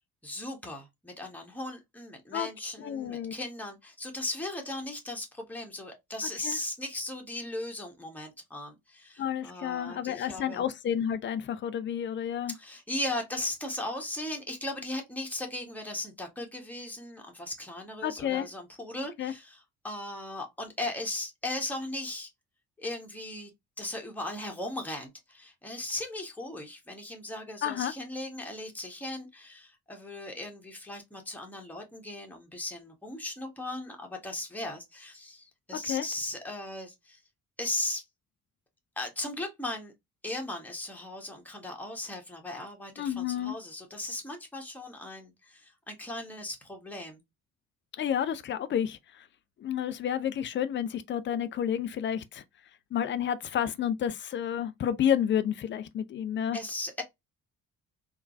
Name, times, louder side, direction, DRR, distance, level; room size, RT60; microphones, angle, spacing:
voice 1, 0.2-10.6 12.5-22.3 22.8-23.5 23.8-37.2 37.6-38.0 39.0-39.9 40.2-47.2 56.5-57.0, left 1 dB, 5° left, 1.1 m, -37 dB
voice 2, 2.8-3.3 6.4-6.6 9.2-12.5 18.0-18.5 19.2-19.3 27.6-27.9 35.8-36.1 43.0-43.5 48.0-49.2 49.6-52.4 52.9-56.6, left 9 dB, 30° left, 0.4 m, -30 dB
3.7 x 2.3 x 2.5 m
figure-of-eight pair, 40°, 43 cm